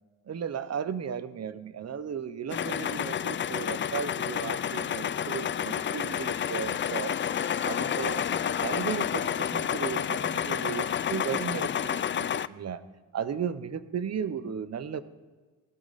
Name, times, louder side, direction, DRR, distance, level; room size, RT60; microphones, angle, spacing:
voice 1, 0.3-7.2 7.6-12.8 13.1-15.0, right 7 dB, 50° right, 14 dB, 1.0 m, -35 dB
sound 1, 2.5-12.5, left 9 dB, 35° left, 0.4 m, -30 dB
17.5 x 12.0 x 4.2 m, 1.4 s
cardioid pair, 70°, 33 cm